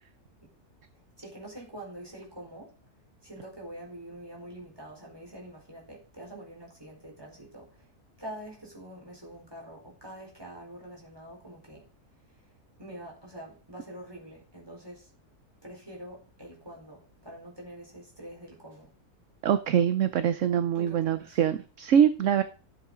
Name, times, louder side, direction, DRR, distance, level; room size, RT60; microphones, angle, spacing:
voice 1, 1.2-2.8 3.2-7.9 8.2-11.9 12.8-15.1 15.6-18.9 20.7-21.4, right 1 dB, 15° right, 4.3 m, -45 dB
voice 2, 19.4-22.4, right 9 dB, 60° right, 1.0 m, -24 dB
12.5 x 8.2 x 3.8 m
omnidirectional pair, 1.6 m